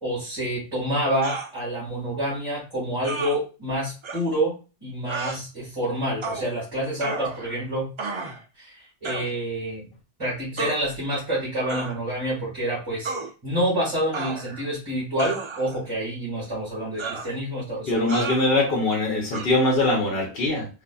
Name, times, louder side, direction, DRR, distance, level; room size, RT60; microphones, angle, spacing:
voice 1, 0.0-4.5 4.8-7.9 8.6-9.8 10.2-13.1 13.4-18.3, right 1 dB, 25° right, -8 dB, 1.9 m, -28 dB
sound 1, 1.2-1.5 3.0-3.4 4.0-4.2 5.1-5.4 6.2-6.5 7.0-7.6 8.0-8.4 9.0-9.3 10.6-10.8 11.7-12.0 13.0-13.3 14.1-14.7 15.2-15.8 17.0-17.3 18.1-18.5 19.3-19.5, right 4 dB, 50° right, 0.3 m, -32 dB
voice 2, 17.9-20.7, left 2 dB, 60° left, -1 dB, 1.0 m, -22 dB
3.8 x 2.6 x 2.3 m, 0.32 s
omnidirectional pair, 1.2 m